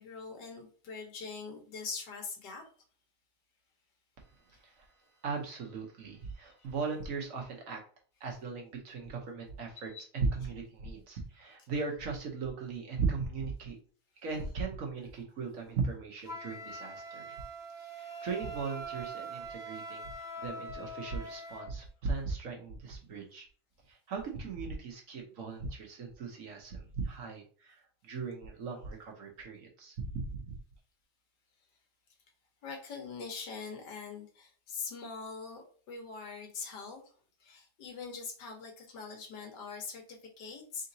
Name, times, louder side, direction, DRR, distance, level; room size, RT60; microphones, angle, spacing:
voice 1, 0.0-2.6 6.4-6.5 9.9-10.0 17.0-17.1 32.6-37.0 37.4-40.9, left 5 dB, 85° left, 3 dB, 1.6 m, -43 dB
voice 2, 4.5-4.9 5.2-7.8 8.2-13.8 14.2-17.4 17.8-23.5 23.9-30.5, right 4 dB, 60° right, 1 dB, 1.1 m, -38 dB
Wind instrument woodwind instrument, 16.2-21.7, right 2 dB, 5° right, 0.4 m, -43 dB
4.1 x 3.8 x 2.6 m, 0.43 s
omnidirectional pair, 1.8 m